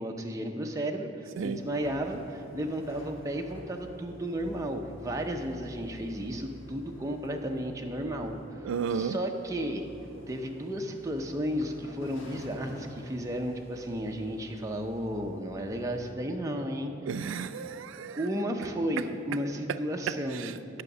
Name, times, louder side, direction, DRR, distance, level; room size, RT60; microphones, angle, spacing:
voice 1, 0.0-9.9 10.3-17.2 18.2-20.5, equal, 15° right, 2 dB, 0.6 m, -33 dB
sound 1, 1.6-16.1, equal, 90° left, 1.3 m, -50 dB
voice 2, 8.6-9.2 17.1-18.3 20.3-20.8, right 6 dB, 90° right, 11 dB, 0.4 m, -33 dB
9.6 x 6.3 x 6.0 m, 2.7 s
head